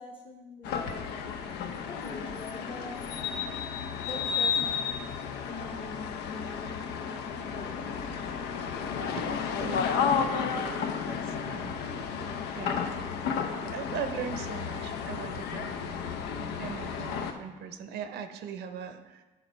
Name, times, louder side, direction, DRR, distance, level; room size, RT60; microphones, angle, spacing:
voice 1, 0.0-1.4 1.8-3.1 4.0-5.0 5.5-8.1, left 3 dB, 30° left, -2 dB, 0.9 m, -44 dB
sound 1, 0.6-17.3, left 6 dB, 85° left, 0.8 m, -32 dB
voice 2, 9.6-11.9 12.5-12.8 13.6-15.9 16.6-19.2, right 7 dB, 80° right, 8 dB, 0.8 m, -40 dB
9.2 x 5.7 x 4.5 m, 1.2 s
cardioid pair, 110°, 17 cm